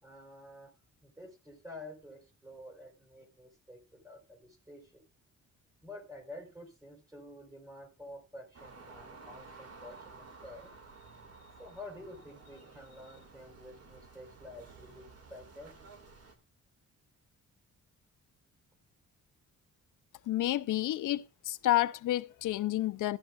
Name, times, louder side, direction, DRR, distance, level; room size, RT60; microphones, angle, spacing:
voice 1, 0.0-0.7 1.0-10.7 11.0-15.8, left 1 dB, 10° right, 4.0 m, -50 dB
sound 1, 8.5-16.4, right 4 dB, 50° right, 2.1 m, -53 dB
voice 2, 20.3-23.2, left 14 dB, 90° left, 0.6 m, -30 dB
15.0 x 11.5 x 2.4 m
cardioid pair, 125°, 30 cm